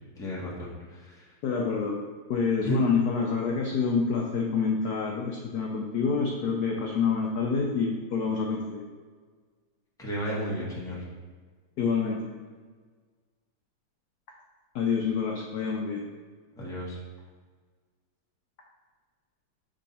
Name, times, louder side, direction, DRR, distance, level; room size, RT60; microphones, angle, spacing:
voice 1, 0.2-1.3 2.6-2.8 10.0-11.1 16.6-17.0, right 1 dB, ahead, -6 dB, 0.9 m, -33 dB
voice 2, 1.4-2.0 2.3-8.9 11.8-12.3 14.7-16.1, left 5 dB, 75° left, 0 dB, 0.9 m, -27 dB
6.5 x 3.6 x 4.1 m, 1.5 s
omnidirectional pair, 2.3 m